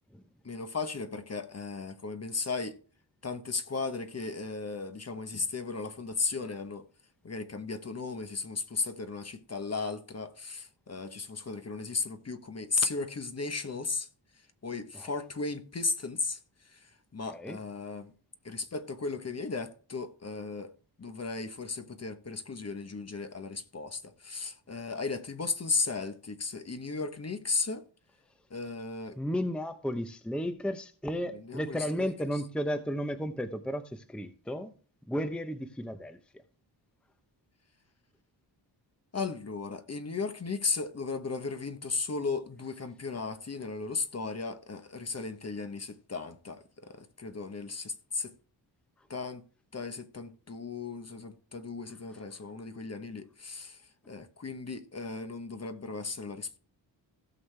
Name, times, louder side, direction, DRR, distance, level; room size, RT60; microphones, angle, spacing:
voice 1, 0.4-2.8 3.2-6.9 7.2-14.1 14.6-16.4 16.6-18.1 18.4-20.7 21.0-27.9 28.5-29.2 31.3-32.1 39.1-48.3 49.1-49.4 49.7-53.8 54.1-56.6, left 4 dB, 35° left, 1.0 m, -35 dB
voice 2, 29.2-34.7 35.1-36.4, equal, ahead, 0.8 m, -34 dB
16.5 x 6.4 x 3.3 m
wide cardioid pair, 110°, 45 cm